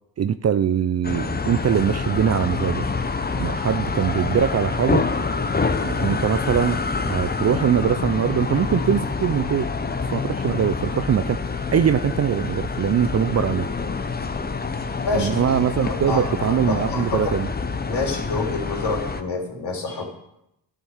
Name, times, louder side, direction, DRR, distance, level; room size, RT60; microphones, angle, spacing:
voice 1, 0.2-2.8 3.4-5.1 5.8-9.7 10.1-11.4 11.7-13.7 15.1-17.5, right 8 dB, 35° right, 12 dB, 0.5 m, -22 dB
sound 1, 1.0-19.2, left 4 dB, 20° left, 0.9 m, -26 dB
voice 2, 15.8-17.4 17.8-20.1, left 3 dB, 55° left, 0 dB, 3.2 m, -27 dB
12.5 x 5.8 x 6.5 m, 0.83 s
supercardioid pair, 65°, 48 cm